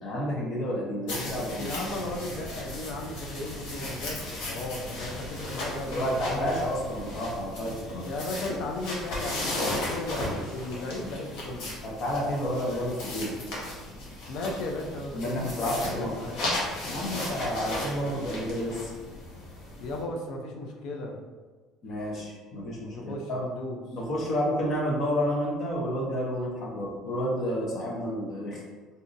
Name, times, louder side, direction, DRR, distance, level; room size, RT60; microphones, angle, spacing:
voice 1, 0.0-1.7 5.9-8.1 11.8-13.3 15.1-16.1 16.8-18.9 21.8-23.4 23.9-28.6, equal, 35° left, -3 dB, 0.9 m, -30 dB
sound 1, 1.1-20.0, left 1 dB, 75° left, 1.1 m, -36 dB
voice 2, 1.6-6.7 8.0-11.7 14.3-16.4 19.8-21.2 22.9-23.8, left 2 dB, 60° left, 1 dB, 0.5 m, -36 dB
3.9 x 2.7 x 2.5 m, 1.4 s
cardioid pair, 155°, 0 cm